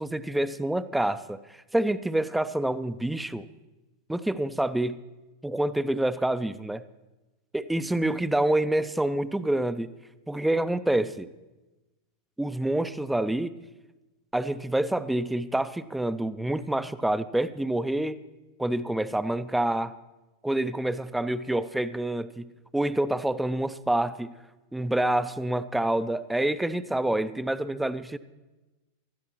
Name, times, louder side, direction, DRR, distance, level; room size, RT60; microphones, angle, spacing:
voice 1, 0.0-1.4 1.7-3.5 4.1-5.0 5.4-6.8 7.5-9.9 10.3-11.3 12.4-13.5 14.3-18.2 18.6-19.9 20.4-24.3 24.7-28.2, right 1 dB, 5° right, 14 dB, 0.4 m, -27 dB
19.5 x 13.0 x 3.0 m, 1.1 s
figure-of-eight pair, 90°, 0 cm